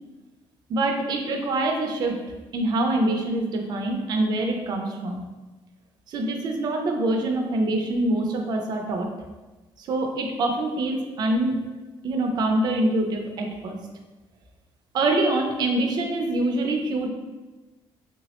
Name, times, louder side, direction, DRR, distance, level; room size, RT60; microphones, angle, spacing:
voice 1, 0.7-2.1 2.5-5.3 6.1-9.1 9.8-11.6 12.0-13.8 14.9-17.1, right 2 dB, 45° right, 3 dB, 0.4 m, -25 dB
3.2 x 2.0 x 2.8 m, 1.2 s
cardioid pair, 160°, 10 cm